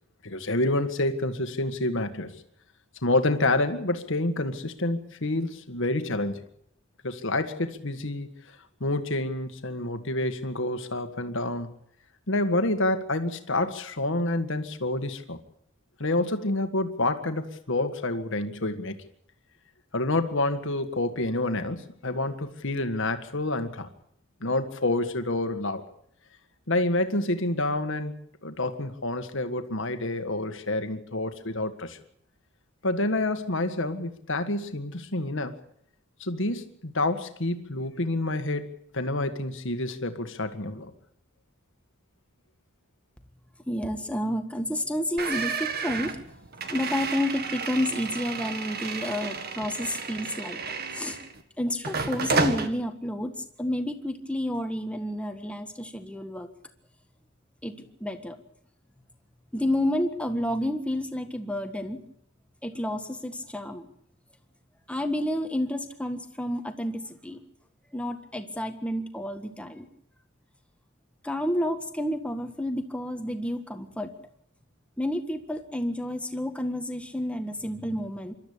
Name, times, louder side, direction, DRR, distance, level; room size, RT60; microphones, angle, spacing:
voice 1, 0.2-2.3 3.0-6.4 7.0-8.3 8.8-11.7 12.3-15.4 16.0-19.0 19.9-23.9 24.4-25.8 26.7-28.1 28.4-32.0 32.8-35.6 36.2-40.9, left 2 dB, 65° left, 9 dB, 1.8 m, -28 dB
voice 2, 43.7-46.1 46.7-50.6 50.9-51.2 51.6-53.3 53.6-56.5 57.6-58.4 59.5-62.0 62.6-63.8 64.9-66.9 67.2-67.4 67.9-69.9 71.2-74.1 75.0-78.3, left 1 dB, 5° left, 6 dB, 1.7 m, -30 dB
sound 1, 45.2-51.4 51.8-52.7, right 4 dB, 50° right, 1.8 m, -31 dB
26.0 x 13.0 x 8.6 m, 0.69 s
head